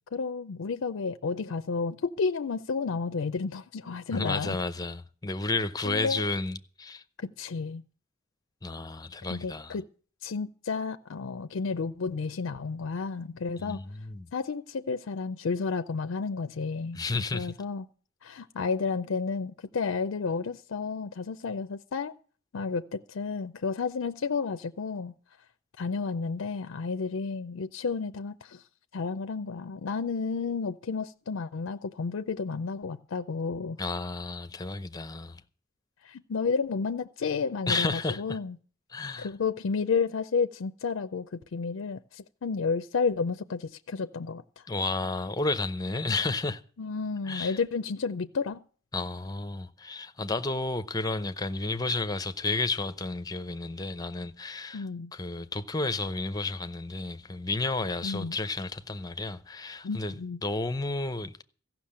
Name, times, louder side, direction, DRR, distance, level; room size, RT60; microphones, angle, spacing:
voice 1, 0.1-4.6 5.8-6.2 7.2-7.8 9.3-9.9 10.2-13.8 14.3-17.0 17.3-17.8 18.2-22.1 22.5-25.1 25.8-28.6 28.9-33.8 36.0-38.5 39.2-44.6 46.8-48.6 54.7-55.1 58.0-58.4 59.8-60.4, left 5 dB, 85° left, 0.5 m, -31 dB
voice 2, 4.1-7.0 8.6-9.8 13.6-14.3 16.9-17.5 33.8-35.4 37.7-38.4 38.9-39.3 44.7-46.6 47.2-47.6 48.9-60.2 60.4-61.4, left 3 dB, 20° left, 0.7 m, -32 dB
15.0 x 6.1 x 8.7 m
head